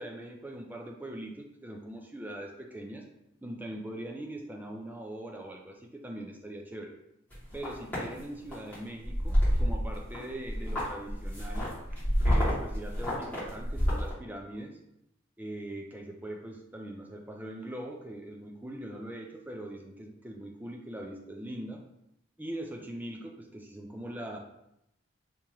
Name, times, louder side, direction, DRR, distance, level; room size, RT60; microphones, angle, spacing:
voice 1, 0.0-3.0 3.4-6.9 7.5-11.7 12.2-14.8 15.4-21.8 22.4-24.4, right 1 dB, 10° right, 1 dB, 0.4 m, -41 dB
sound 1, 7.3-8.0 8.5-8.8 9.0-10.2 10.4-14.1, equal, 10° left, 1.4 m, -28 dB
3.6 x 2.9 x 3.0 m, 0.82 s
head